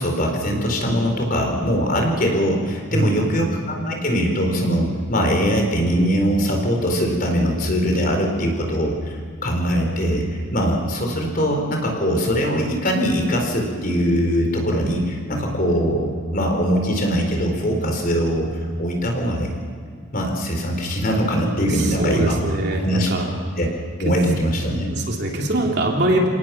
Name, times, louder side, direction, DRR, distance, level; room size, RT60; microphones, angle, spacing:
voice 1, 0.0-19.5 20.1-22.4 22.8-23.1 23.6-23.7 24.0-24.9, equal, 40° left, 2 dB, 4.2 m, -21 dB
voice 2, 2.9-3.3 21.6-23.3 24.0-24.1 24.9-26.3, right 1 dB, 50° right, 0 dB, 3.4 m, -23 dB
28.5 x 18.0 x 6.0 m, 2.1 s
head